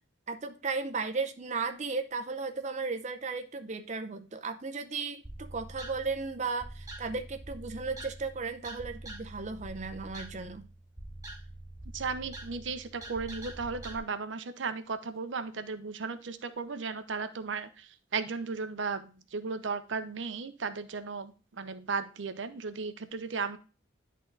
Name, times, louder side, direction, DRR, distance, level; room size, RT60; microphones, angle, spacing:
voice 1, 0.3-10.7, right 4 dB, 40° right, 6 dB, 0.6 m, -35 dB
sound 1, 5.2-14.0, right 1 dB, 20° right, 1.7 m, -45 dB
voice 2, 11.9-23.6, right 4 dB, 75° right, 10 dB, 0.7 m, -35 dB
10.5 x 3.7 x 3.8 m, 0.34 s
head